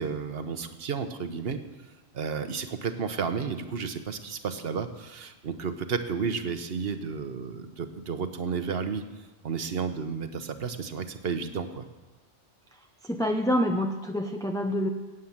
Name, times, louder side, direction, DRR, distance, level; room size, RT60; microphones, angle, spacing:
voice 1, 0.0-1.6 2.1-9.0 9.4-11.8, right 6 dB, 60° right, 9 dB, 1.2 m, -32 dB
voice 2, 13.0-14.9, equal, 5° left, 3 dB, 0.6 m, -27 dB
17.5 x 8.2 x 7.3 m, 1.2 s
omnidirectional pair, 1.2 m